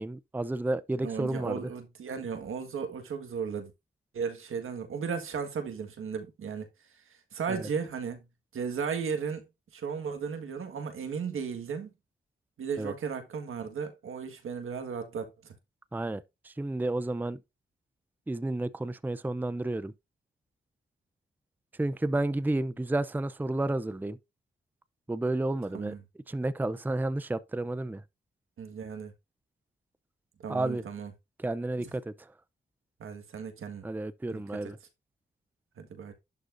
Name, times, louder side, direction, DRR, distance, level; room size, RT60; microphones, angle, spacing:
voice 1, 0.0-1.7 7.5-7.7 12.8-12.9 15.9-17.4 18.3-19.9 21.8-24.2 25.1-26.0 26.3-28.0 30.5-30.8 31.4-32.1 33.8-34.8, right 2 dB, 10° right, 0.5 m, -31 dB
voice 2, 1.0-3.7 4.1-6.7 7.3-8.2 8.5-9.4 9.7-11.9 12.6-15.5 25.7-26.0 28.6-29.1 30.4-31.1 33.0-33.8 34.3-34.7 35.8-36.1, right 6 dB, 80° right, 1.6 m, -35 dB
11.5 x 4.1 x 2.6 m
cardioid pair, 55°, 21 cm